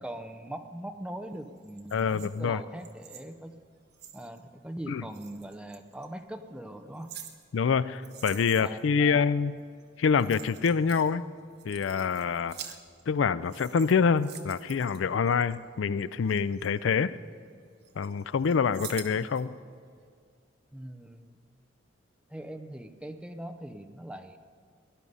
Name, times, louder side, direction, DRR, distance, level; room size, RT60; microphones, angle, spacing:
voice 1, 0.0-3.5 4.1-7.1 8.5-9.3 20.7-21.4 22.3-24.4, right 1 dB, 5° right, 7 dB, 0.7 m, -41 dB
sound 1, 1.6-4.4 5.1-6.1 6.7-8.9 9.8-9.9 10.1-11.1 11.5-13.2 13.4-15.6 16.0-17.5 17.8-19.4 19.8-19.9, right 9 dB, 60° right, 1.2 m, -47 dB
voice 2, 1.9-2.6 4.9-5.0 7.5-9.5 10.0-11.2 11.6-12.6 13.1-17.1 18.0-19.5, left 6 dB, 85° left, 16 dB, 0.4 m, -26 dB
18.0 x 11.5 x 5.5 m, 2.1 s
head